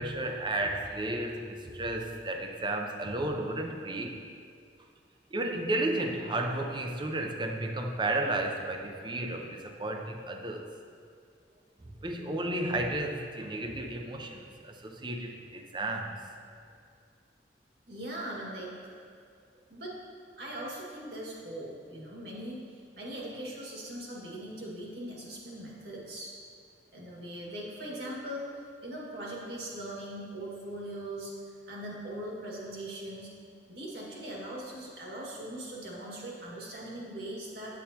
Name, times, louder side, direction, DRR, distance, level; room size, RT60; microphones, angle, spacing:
voice 1, 0.0-4.2 5.3-10.7 11.8-16.3, right 1 dB, 25° right, 3 dB, 0.6 m, -33 dB
voice 2, 17.9-18.9 19.7-20.0 20.4-26.4 26.9-31.3 31.7-33.3 33.7-37.8, right 1 dB, 60° right, -4 dB, 1.8 m, -40 dB
8.8 x 8.4 x 2.9 m, 2.2 s
head